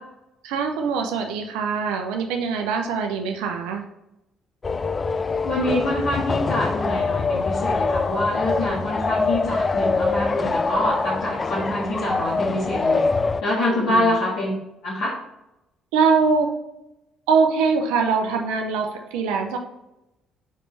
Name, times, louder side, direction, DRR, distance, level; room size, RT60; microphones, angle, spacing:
voice 1, 0.4-3.8 13.7-14.1 15.9-16.5 17.3-19.6, right 5 dB, 75° right, 3 dB, 0.8 m, -23 dB
sound 1, 4.6-13.4, left 4 dB, 30° left, 0.4 m, -24 dB
voice 2, 5.4-13.0 13.4-14.5 14.8-15.2, left 1 dB, 65° left, -8 dB, 1.9 m, -25 dB
5.6 x 5.1 x 3.3 m, 0.90 s
hypercardioid pair, 50°, 0 cm